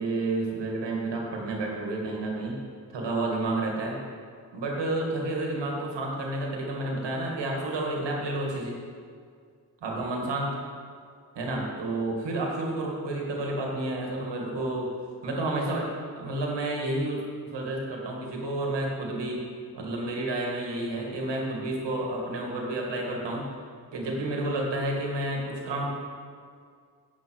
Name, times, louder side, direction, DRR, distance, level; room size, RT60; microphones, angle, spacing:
voice 1, 0.0-2.6 2.9-4.0 4.5-8.8 9.8-10.5 11.4-14.9 15.2-15.9 16.2-17.2 17.5-19.4 19.7-23.4 23.9-25.9, right 2 dB, 80° right, -1 dB, 2.1 m, -30 dB
10.0 x 7.5 x 4.6 m, 2.1 s
cardioid pair, 55°, 42 cm